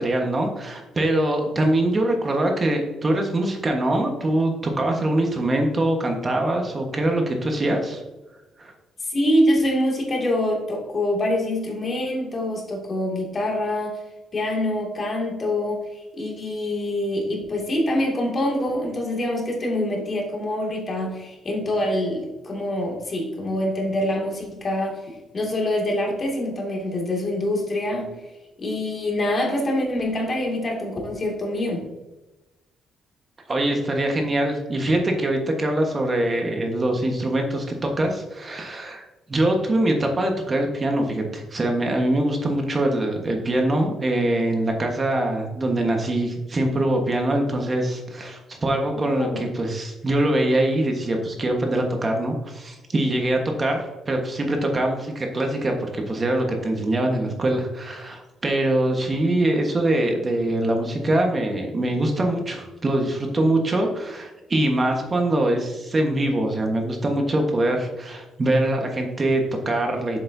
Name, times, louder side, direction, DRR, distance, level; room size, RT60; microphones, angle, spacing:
voice 1, 0.0-8.0 8.6-8.7 33.5-39.0 39.3-70.2, right 1 dB, 30° right, 2 dB, 1.3 m, -23 dB
voice 2, 9.1-14.0 14.3-28.1 28.6-31.9 48.9-49.4, left 1 dB, 40° left, 0 dB, 2.3 m, -25 dB
7.3 x 7.0 x 2.7 m, 1.0 s
cardioid pair, 90°, 0 cm